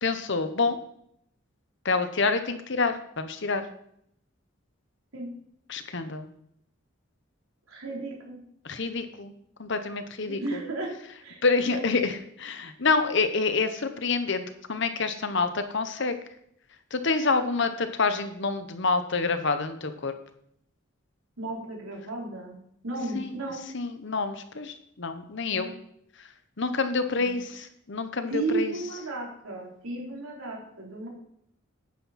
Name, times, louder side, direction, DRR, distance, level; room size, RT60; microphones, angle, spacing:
voice 1, 0.0-0.8 1.8-3.6 5.7-6.3 8.6-9.3 9.6-10.4 11.4-12.1 12.4-14.4 14.7-16.1 16.9-20.1 23.1-23.4 23.7-25.7 26.6-28.7, left 4 dB, 55° left, 9 dB, 1.0 m, -27 dB
voice 2, 7.7-8.4 10.3-10.9 11.2-11.4 11.6-11.8 21.4-22.6 22.8-23.6 25.5-25.7 27.2-27.3 28.3-31.1, right 2 dB, 80° right, -2 dB, 3.5 m, -34 dB
10.5 x 9.6 x 4.2 m, 0.72 s
head